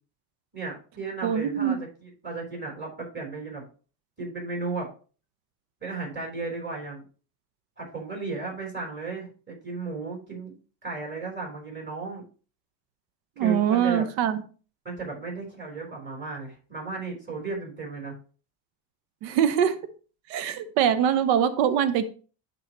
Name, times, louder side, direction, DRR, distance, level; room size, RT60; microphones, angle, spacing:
voice 1, 0.5-3.6 4.2-4.9 5.8-7.0 7.8-10.5 10.8-12.2 13.4-14.1 14.8-18.1, right 3 dB, 20° right, -1 dB, 3.8 m, -35 dB
voice 2, 1.2-1.8 13.4-14.4 19.2-19.8 20.3-22.0, right 9 dB, 85° right, 12 dB, 0.8 m, -23 dB
11.0 x 4.0 x 3.0 m, 0.38 s
supercardioid pair, 105°, 50 cm